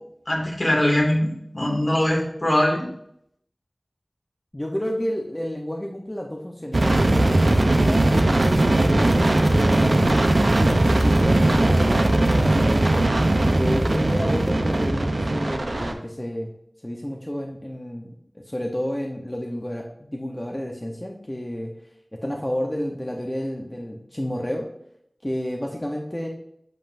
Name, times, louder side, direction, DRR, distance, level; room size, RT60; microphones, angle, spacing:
voice 1, 0.3-1.3 1.5-2.8, left 1 dB, 60° left, -2 dB, 2.3 m, -21 dB
voice 2, 4.5-9.2 9.5-13.1 13.6-16.5 16.8-18.1 18.3-21.7 22.2-24.7 25.2-26.3, equal, 25° left, 0 dB, 0.9 m, -31 dB
sound 1, 6.7-15.9, right 1 dB, 80° right, 0.7 m, -19 dB
7.7 x 5.5 x 2.6 m, 0.72 s
wide cardioid pair, 40°, 0 cm